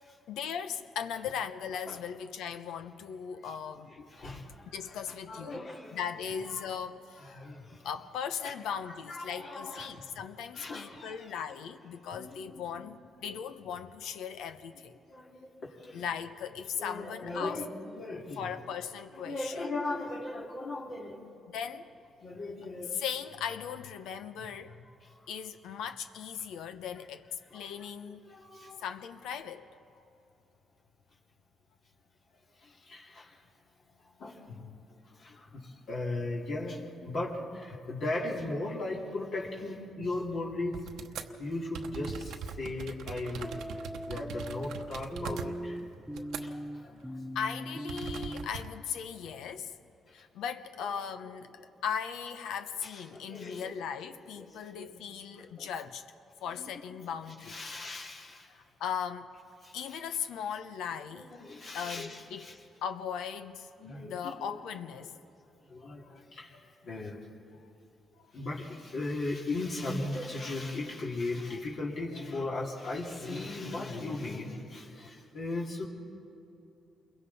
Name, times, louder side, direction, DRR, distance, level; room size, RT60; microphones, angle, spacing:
voice 1, 0.3-4.0 4.7-7.4 7.8-15.0 15.9-17.6 18.4-19.5 21.5-21.9 22.9-24.7 25.3-27.3 27.5-28.2 28.8-29.7 47.3-49.7 50.1-51.5 51.8-56.0 56.4-57.6 58.5-59.3 59.7-61.3 61.7-62.5 62.8-63.7 64.0-65.1, left 7 dB, 85° left, 0.9 m, -38 dB
voice 2, 3.9-6.0 6.4-6.7 7.2-7.9 8.4-8.5 8.8-10.0 10.5-11.6 12.1-12.9 13.3-13.4 14.7-14.8 15.1-16.0 16.8-18.6 19.1-21.2 22.2-23.0 24.7-25.2 27.5-28.8 30.0-30.1 32.6-33.4 34.2-40.9 41.2-45.8 46.1-47.1 48.5-48.6 49.1-49.5 51.6-51.7 52.8-53.8 54.4-55.0 55.3-55.7 56.5-58.5 59.6-60.0 61.1-62.6 63.8-64.6 65.6-67.3 68.3-75.8, left 2 dB, 60° left, 3.0 m, -38 dB
sound 1, 40.7-41.3 41.7-46.7 47.0-47.2 47.9-48.7, right 6 dB, 80° right, 1.0 m, -42 dB
sound 2, 41.5-42.3 43.4-48.5, equal, 5° right, 0.7 m, -40 dB
28.5 x 22.5 x 4.3 m
cardioid pair, 90°, 0 cm